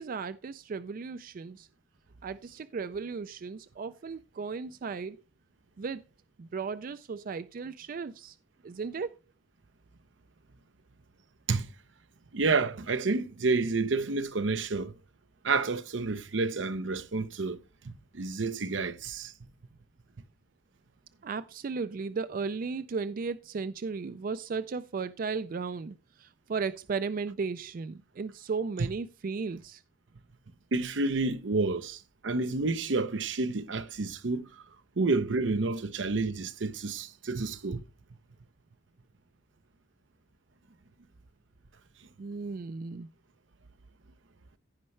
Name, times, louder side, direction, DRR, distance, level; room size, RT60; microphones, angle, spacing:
voice 1, 0.0-1.7 2.2-5.2 5.8-6.0 6.4-8.4 8.6-9.2 21.2-29.8 42.2-43.1, right 5 dB, 50° right, 0.4 m, -35 dB
voice 2, 12.3-14.9 15.4-19.3 28.8-28.9 30.7-34.6 35.0-37.8, right 3 dB, 85° right, 0.8 m, -30 dB
15.5 x 5.4 x 3.2 m
head